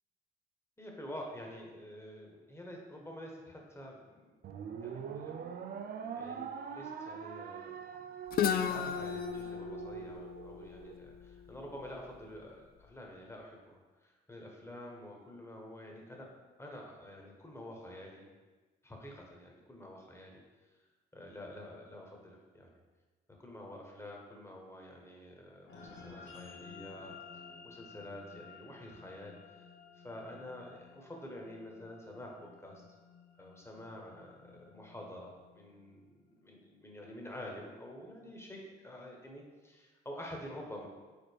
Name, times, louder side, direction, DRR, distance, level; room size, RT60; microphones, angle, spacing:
voice 1, 0.8-4.3 4.8-5.5 6.2-8.2 8.7-16.3 16.6-18.2 18.8-20.4 21.1-22.8 23.4-27.1 27.6-29.7 29.9-32.8 33.4-36.1 36.4-40.9, left 1 dB, 15° left, 0 dB, 1.5 m, -48 dB
sound 1, 4.4-11.0, right 7 dB, 55° right, 0.5 m, -43 dB
Guitar, 8.3-12.1, left 8 dB, 55° left, 0.4 m, -35 dB
sound 2, 25.7-36.3, left 5 dB, 75° left, 1.2 m, -54 dB
5.2 x 4.1 x 4.7 m, 1.3 s
supercardioid pair, 65°, 19 cm